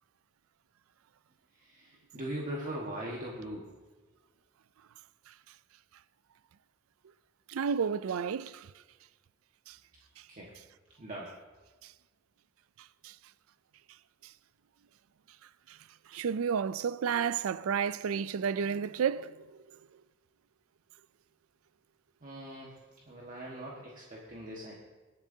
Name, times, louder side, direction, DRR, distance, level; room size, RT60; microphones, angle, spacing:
voice 1, 1.6-3.7 10.3-10.5 11.0-11.3 22.2-22.8 23.1-24.7, right 1 dB, 40° right, 1.5 m, -40 dB
voice 2, 7.5-8.7 9.7-9.8 13.0-13.1 15.7-15.8 16.1-19.6, right 7 dB, 85° right, 0.4 m, -31 dB
25.5 x 8.7 x 2.8 m
head